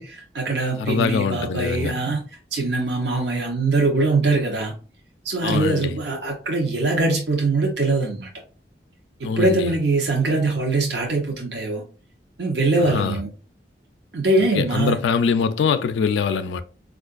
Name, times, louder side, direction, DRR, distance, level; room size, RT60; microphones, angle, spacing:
voice 1, 0.0-2.2 2.5-4.7 5.2-8.3 9.2-11.8 12.4-13.3 14.1-15.0, right 3 dB, 70° right, 0.7 m, -22 dB
voice 2, 0.8-1.9 5.4-6.0 9.2-9.7 12.8-13.2 14.5-16.6, left 5 dB, 80° left, 0.3 m, -23 dB
4.5 x 2.4 x 2.4 m
head